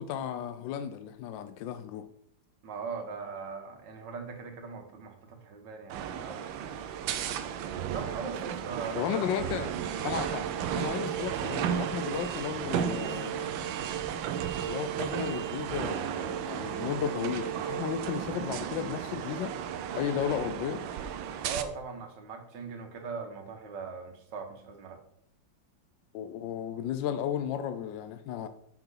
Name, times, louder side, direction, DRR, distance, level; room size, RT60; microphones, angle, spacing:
voice 1, 0.0-2.1 9.0-9.7 10.0-10.4 10.8-13.6 14.6-19.6 19.9-20.9 26.1-28.5, left 9 dB, 80° left, 10 dB, 1.2 m, -34 dB
voice 2, 2.6-6.5 7.9-9.5 21.4-25.0, right 5 dB, 70° right, 5 dB, 1.9 m, -40 dB
sound 1, 5.9-21.6, right 9 dB, 90° right, 1.4 m, -34 dB
6.9 x 6.0 x 5.6 m, 0.71 s
omnidirectional pair, 2.1 m